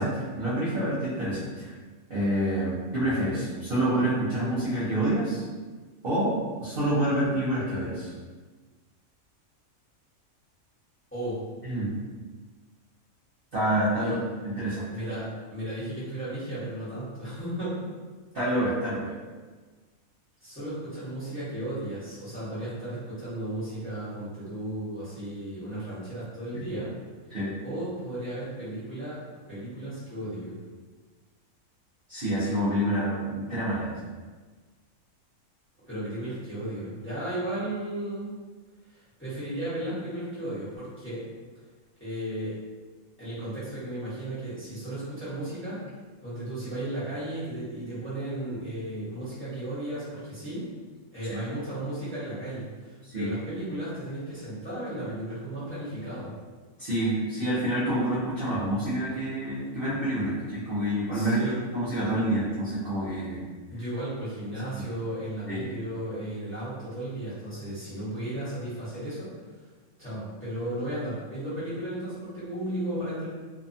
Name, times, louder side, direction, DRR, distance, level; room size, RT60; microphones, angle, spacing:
voice 1, 0.0-1.7 2.1-5.4 6.0-8.1 11.6-11.9 13.5-14.1 14.4-14.9 18.3-19.1 26.5-26.8 27.3-27.5 32.1-33.9 51.3-51.4 53.1-53.3 56.8-61.4 61.7-63.4 64.8-64.9 65.5-65.6, right 1 dB, 50° right, -11 dB, 0.7 m, -27 dB
voice 2, 14.9-17.9 20.4-26.9 27.6-29.2 29.5-30.6 35.9-38.4 38.9-41.2 42.0-42.5 43.2-45.8 46.2-50.7 51.1-56.3 61.1-61.6 63.7-69.3 70.0-73.3, right 1 dB, 10° left, -13 dB, 1.0 m, -34 dB
2.7 x 2.2 x 2.6 m, 1.4 s
omnidirectional pair, 1.6 m